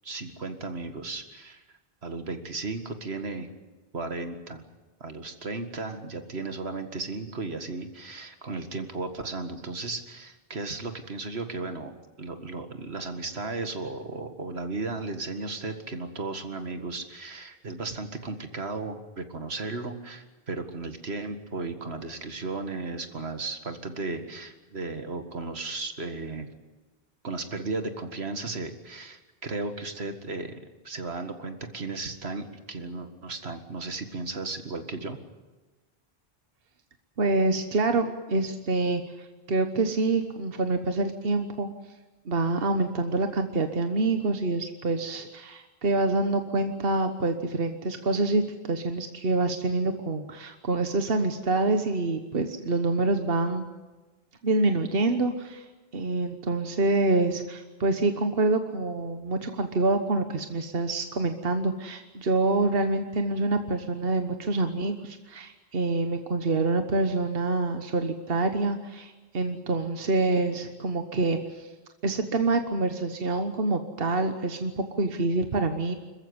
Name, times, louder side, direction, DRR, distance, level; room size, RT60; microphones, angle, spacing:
voice 1, 0.0-1.6 2.0-3.5 3.9-4.6 5.0-26.5 27.2-30.5 30.8-35.2, right 3 dB, 85° right, 7 dB, 2.2 m, -35 dB
voice 2, 37.2-41.7 42.3-53.6 54.4-55.6 55.9-71.7 72.0-75.9, right 2 dB, 65° right, 7 dB, 1.4 m, -26 dB
26.5 x 15.0 x 9.7 m, 1.2 s
omnidirectional pair, 1.0 m